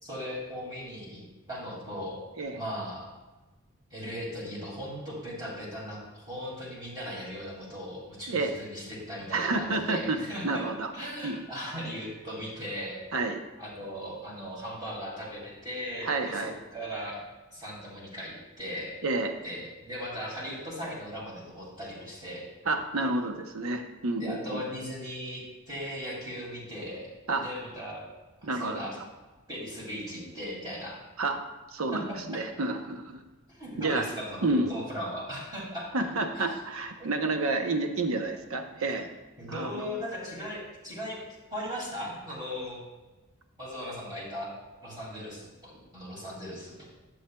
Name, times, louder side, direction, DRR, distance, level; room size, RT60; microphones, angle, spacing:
voice 1, 0.0-1.2 1.5-2.2 2.5-3.1 3.9-10.7 10.9-13.0 13.6-17.2 17.5-19.0 19.4-22.4 24.2-28.0 28.4-29.0 29.5-31.0 31.9-32.2 33.5-35.9 36.3-36.5 37.0-37.1 38.8-39.0 39.4-41.2 41.5-42.8 43.6-44.5 44.8-46.9, equal, 20° right, -6 dB, 2.1 m, -38 dB
voice 2, 9.3-10.9 11.2-11.4 13.1-13.4 16.0-16.5 19.0-19.3 22.7-24.6 27.3-27.5 28.4-28.9 31.2-31.4 31.7-33.2 33.8-34.0 34.4-34.7 35.9-39.1 39.5-39.9, right 2 dB, 70° right, 6 dB, 0.8 m, -29 dB
11.0 x 7.2 x 2.2 m, 1.2 s
head